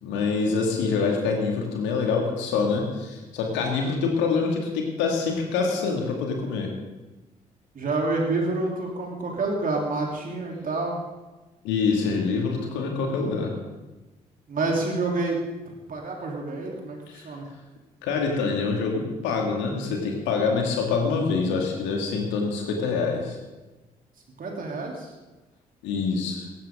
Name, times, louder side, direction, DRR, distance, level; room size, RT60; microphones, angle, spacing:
voice 1, 0.0-6.7 11.6-13.5 17.1-17.3 18.0-23.4 25.8-26.5, left 4 dB, 65° left, 1 dB, 2.5 m, -25 dB
voice 2, 7.7-11.0 14.5-15.4 15.7-17.5 24.4-25.1, right 3 dB, 45° right, 0 dB, 3.5 m, -28 dB
16.5 x 16.0 x 3.8 m, 1.1 s
figure-of-eight pair, 40°, 20 cm